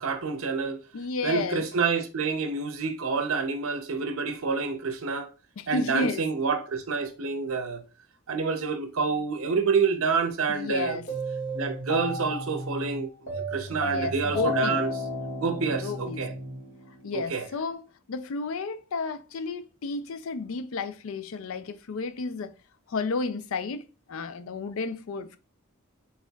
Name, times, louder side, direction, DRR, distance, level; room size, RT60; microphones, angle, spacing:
voice 1, 0.0-0.8 1.2-5.3 5.7-7.8 8.3-11.0 11.5-14.9 15.4-16.3 17.1-17.4, right 5 dB, 75° right, 0.7 m, -28 dB
voice 2, 0.9-1.7 5.6-6.2 10.5-11.0 13.8-14.8 15.7-16.2 17.0-22.5 22.9-23.8 24.1-25.4, left 4 dB, 70° left, 0.4 m, -32 dB
sound 1, 11.1-17.2, equal, 45° left, 2.2 m, -33 dB
4.3 x 3.5 x 2.3 m
head